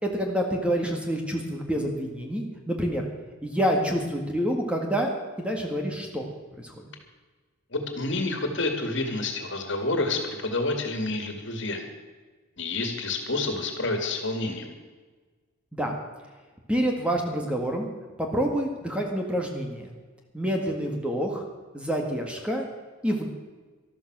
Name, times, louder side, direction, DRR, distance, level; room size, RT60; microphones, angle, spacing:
voice 1, 0.0-3.1 3.4-5.1 5.4-6.3 6.6-6.7 15.7-15.9 16.7-17.9 18.2-19.9 20.3-21.4 21.7-22.6 23.0-23.2, equal, 5° right, 2 dB, 1.8 m, -27 dB
voice 2, 7.7-11.9 12.6-14.7, left 2 dB, 60° left, 5 dB, 2.2 m, -29 dB
13.0 x 13.0 x 6.1 m, 1.4 s
head